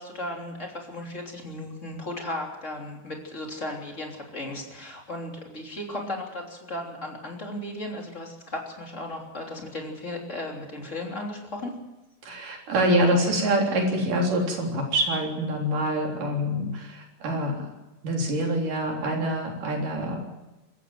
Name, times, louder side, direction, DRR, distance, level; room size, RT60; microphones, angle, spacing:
voice 1, 0.0-11.7 12.8-13.0 13.3-13.6, left 1 dB, 20° left, 0 dB, 3.4 m, -35 dB
voice 2, 12.2-17.7 18.0-20.3, right 1 dB, 80° right, 1 dB, 5.2 m, -25 dB
25.5 x 14.5 x 7.6 m, 1.1 s
omnidirectional pair, 3.7 m